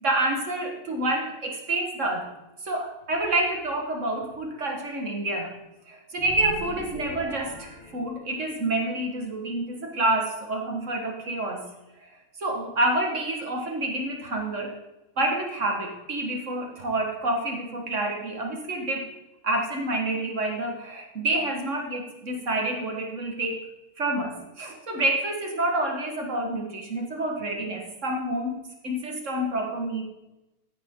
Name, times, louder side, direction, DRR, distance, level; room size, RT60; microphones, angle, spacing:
voice 1, 0.0-2.3 2.6-5.6 5.9-11.7 12.4-14.7 15.2-19.1 19.4-23.6 24.0-30.0, right 2 dB, 35° right, 2 dB, 1.7 m, -28 dB
sound 1, 6.2-8.7, left 1 dB, 90° left, 2.6 m, -41 dB
14.0 x 9.5 x 3.8 m, 1.0 s
omnidirectional pair, 2.4 m